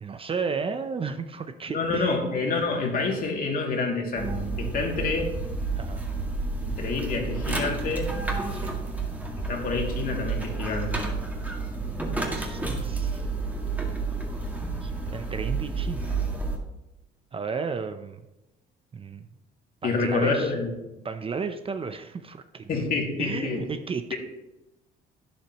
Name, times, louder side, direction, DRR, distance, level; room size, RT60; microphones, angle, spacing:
voice 1, 0.0-2.2 5.8-6.1 8.5-8.8 12.3-13.3 14.8-16.2 17.3-18.2 18.9-19.3 19.8-20.5 21.0-22.8 23.2-24.1, right 5 dB, 30° right, 8 dB, 0.6 m, -33 dB
voice 2, 1.7-4.3 4.6-5.3 6.6-8.1 9.5-11.0 19.8-20.7 22.7-23.6 24.1-24.2, left 4 dB, 50° left, 1 dB, 2.5 m, -27 dB
sound 1, 4.1-16.6, right 3 dB, 10° right, 2.0 m, -30 dB
11.5 x 10.5 x 3.0 m, 0.97 s
cardioid pair, 105°, 19 cm